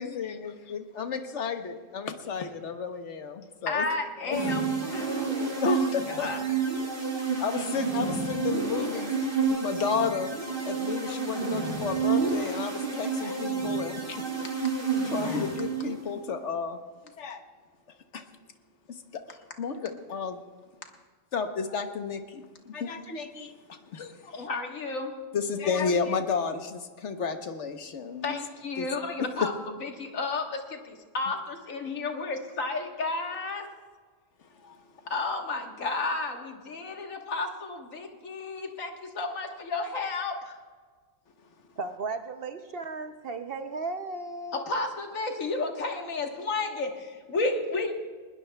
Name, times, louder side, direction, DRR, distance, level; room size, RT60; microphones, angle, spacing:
voice 1, 0.0-4.4 5.6-6.3 7.4-9.1 9.5-10.3 10.6-14.2 15.0-16.8 17.2-17.4 18.1-18.2 18.9-19.2 19.6-20.4 21.3-24.4 25.3-28.4 28.8-28.9 29.2-29.5 34.6-34.8, left 5 dB, 65° left, 7 dB, 1.2 m, -32 dB
voice 2, 3.7-5.8 6.1-6.4 24.2-25.1 28.2-29.5 29.8-33.7 35.1-40.5 44.7-47.9, left 3 dB, 80° left, 3 dB, 1.8 m, -32 dB
sound 1, 4.3-16.1, right 5 dB, 40° right, 2.3 m, -30 dB
voice 3, 41.8-44.7, right 3 dB, 55° right, 8 dB, 0.7 m, -35 dB
20.5 x 19.5 x 2.2 m, 1.5 s
omnidirectional pair, 1.4 m